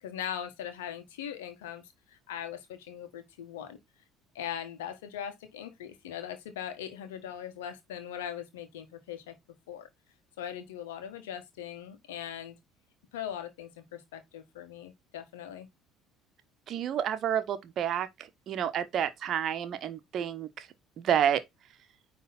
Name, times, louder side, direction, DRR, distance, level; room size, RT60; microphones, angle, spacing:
voice 1, 0.0-1.8 2.1-3.8 4.3-9.3 9.7-9.9 10.4-12.6 13.1-15.7, left 9 dB, 70° left, 1.6 m, -40 dB
voice 2, 16.7-20.7 21.0-21.4, right 9 dB, 45° right, 1.1 m, -30 dB
9.5 x 3.4 x 4.1 m
figure-of-eight pair, 55°, 0 cm